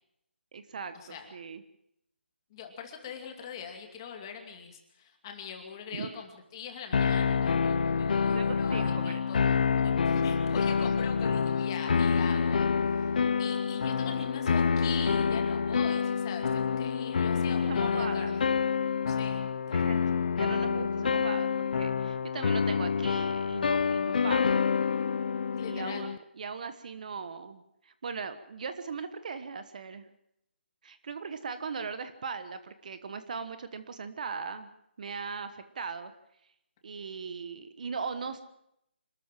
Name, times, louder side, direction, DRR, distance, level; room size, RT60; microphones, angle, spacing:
voice 1, 0.5-1.6 5.9-6.1 8.3-9.2 17.6-18.3 19.7-24.7 25.7-30.1 30.8-34.7 35.0-36.1 36.8-38.4, right 5 dB, 40° right, 11 dB, 1.2 m, -39 dB
voice 2, 2.5-13.1 13.4-18.5 19.1-20.2 25.5-26.1, left 7 dB, 20° left, 4 dB, 2.5 m, -43 dB
sound 1, 6.9-26.2, left 6 dB, 50° left, 0.7 m, -27 dB
26.0 x 13.5 x 7.6 m, 0.79 s
hypercardioid pair, 170°, 6 cm